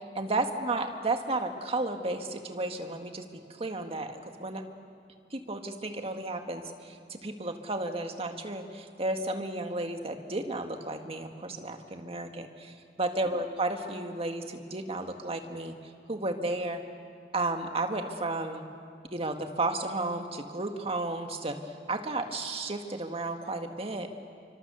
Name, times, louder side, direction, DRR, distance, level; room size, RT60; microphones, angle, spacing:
voice 1, 0.2-4.6 5.3-15.7 16.1-16.8 17.3-18.6 19.1-21.6 21.9-24.1, right 2 dB, 35° right, 5 dB, 1.9 m, -33 dB
29.5 x 25.0 x 7.0 m, 2.2 s
head